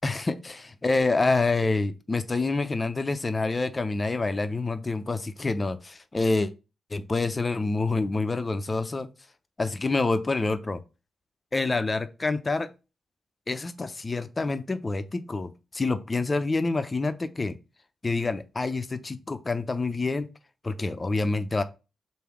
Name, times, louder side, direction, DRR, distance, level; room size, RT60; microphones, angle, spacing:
voice 1, 0.0-6.5 6.9-9.1 9.6-10.8 11.5-12.7 13.5-17.6 18.0-20.3 20.6-21.6, left 3 dB, 35° left, 0.6 m, -27 dB
3.4 x 2.7 x 4.6 m
supercardioid pair, 40°, 0 cm